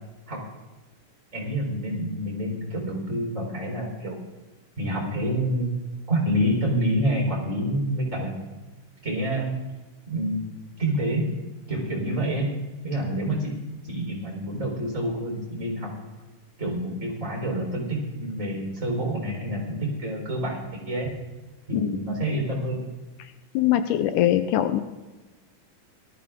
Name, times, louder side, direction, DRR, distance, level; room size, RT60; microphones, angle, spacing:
voice 1, 1.3-4.2 4.8-5.7 6.1-8.5 9.0-9.5 10.1-10.4 10.8-11.2 11.7-12.5 12.8-13.5 13.8-15.9 16.6-20.6 20.8-21.1 21.7-22.8, right 1 dB, 20° right, 0 dB, 4.4 m, -27 dB
voice 2, 23.6-24.8, left 12 dB, 80° left, 10 dB, 2.1 m, -22 dB
18.5 x 13.5 x 3.7 m, 1.2 s
omnidirectional pair, 3.8 m